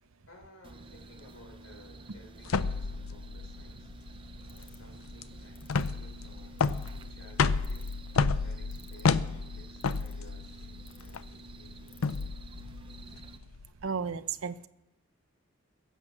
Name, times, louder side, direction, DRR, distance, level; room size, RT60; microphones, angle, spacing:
voice 1, 0.3-6.5 6.9-7.9 8.4-12.2, left 1 dB, 75° left, 1 dB, 4.3 m, -57 dB
sound 1, 0.6-13.4, right 2 dB, 25° right, 0.7 m, -49 dB
sound 2, 2.5-13.7, left 4 dB, 90° left, 0.6 m, -31 dB
sound 3, 4.5-4.9 5.6-5.9 6.6-7.0 7.6-8.1 8.7-9.2 9.8-10.3 10.9-11.2 11.9-12.2, left 7 dB, 25° left, 1.1 m, -55 dB
voice 2, 13.8-14.7, right 6 dB, 85° right, 13 dB, 0.7 m, -34 dB
22.0 x 8.1 x 6.2 m, 0.88 s
head